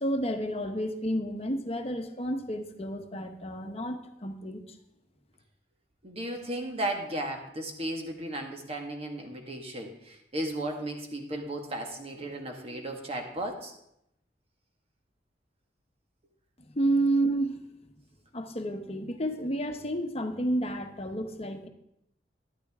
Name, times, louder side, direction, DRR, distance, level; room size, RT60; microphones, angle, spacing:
voice 1, 0.0-4.6 16.7-17.6 18.3-21.7, right 1 dB, 35° left, 6 dB, 1.1 m, -30 dB
voice 2, 6.0-13.7, right 1 dB, 35° right, 3 dB, 1.7 m, -35 dB
12.5 x 12.0 x 3.7 m, 0.78 s
head